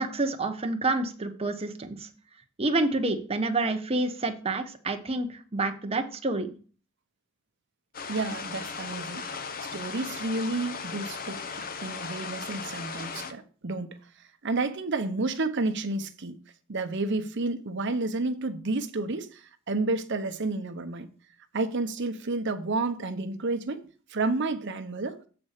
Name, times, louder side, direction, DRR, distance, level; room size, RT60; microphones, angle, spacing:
voice 1, 0.0-2.1 2.6-6.5, right 2 dB, 30° right, 0.9 m, -28 dB
sound 1, 7.9-13.3, left 5 dB, 45° left, 0.8 m, -37 dB
voice 2, 8.1-9.2 9.7-14.0 14.4-16.4 16.7-21.1 21.5-23.8 24.1-25.2, right 3 dB, 60° right, 0.8 m, -30 dB
7.8 x 4.3 x 6.4 m
head